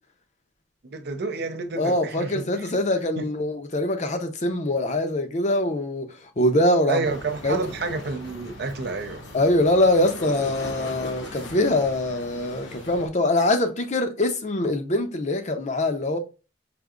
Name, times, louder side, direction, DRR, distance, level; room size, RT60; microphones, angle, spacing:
voice 1, 0.9-2.4 3.2-3.3 6.9-9.2, right 3 dB, 60° right, 0.5 m, -29 dB
voice 2, 1.8-7.1 7.4-7.6 9.3-16.2, left 1 dB, 40° left, 0.6 m, -23 dB
sound 1, 7.0-13.1, left 2 dB, 65° left, 1.0 m, -39 dB
5.0 x 2.6 x 2.4 m
head